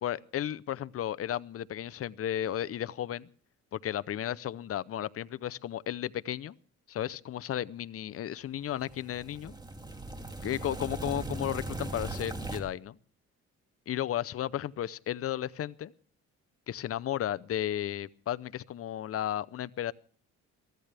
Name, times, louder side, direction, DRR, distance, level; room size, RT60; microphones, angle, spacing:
voice 1, 0.0-3.3 3.7-6.6 6.9-9.5 10.4-13.0 13.9-15.9 16.7-19.9, left 11 dB, 50° left, 18 dB, 0.7 m, -34 dB
sound 1, 8.7-12.6, right 2 dB, 15° right, 2.6 m, -39 dB
23.0 x 15.0 x 3.4 m, 0.43 s
cardioid pair, 90°, 30 cm